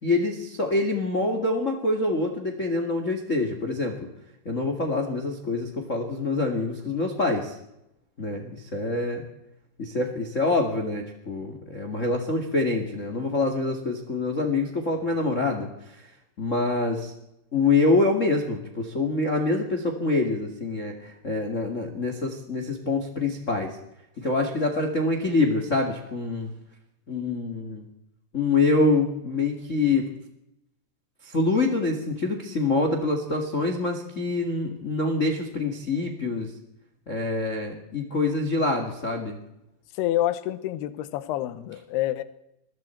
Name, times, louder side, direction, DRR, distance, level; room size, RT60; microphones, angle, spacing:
voice 1, 0.0-4.1 4.4-7.6 8.2-9.2 9.8-16.0 16.4-17.1 17.5-23.8 24.2-26.5 27.1-27.8 28.3-30.1 31.2-36.5 37.1-39.4, left 3 dB, 45° left, 4 dB, 1.0 m, -25 dB
voice 2, 39.9-42.2, left 13 dB, 70° left, 12 dB, 2.9 m, -27 dB
26.5 x 22.0 x 4.5 m, 0.84 s
omnidirectional pair, 5.2 m